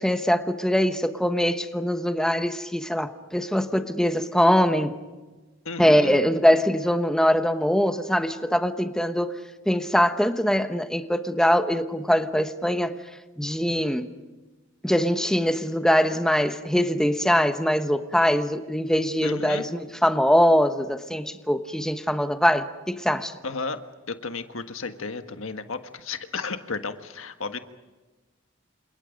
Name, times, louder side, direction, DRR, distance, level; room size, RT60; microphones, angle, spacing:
voice 1, 0.0-5.0 5.8-9.4 9.7-13.0 13.4-14.1 14.8-23.3, equal, 5° left, 1.1 m, -22 dB
voice 2, 5.6-6.2 19.2-19.7 23.4-23.8 24.1-27.6, left 4 dB, 85° left, 1.6 m, -33 dB
29.5 x 27.5 x 5.3 m
head